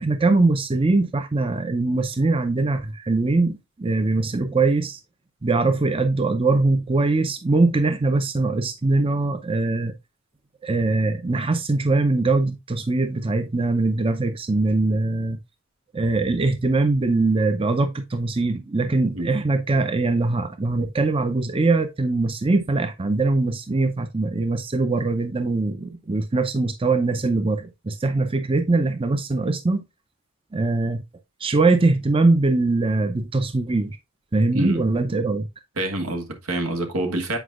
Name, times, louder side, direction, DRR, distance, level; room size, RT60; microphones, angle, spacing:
voice 1, 0.0-5.0 5.4-9.9 10.6-15.4 15.9-29.8 30.5-31.0 31.4-34.0 34.3-35.5, right 3 dB, 25° right, 0.5 m, -22 dB
voice 2, 34.5-34.8 35.8-37.4, right 1 dB, 85° right, 1.4 m, -26 dB
8.0 x 5.1 x 2.4 m
head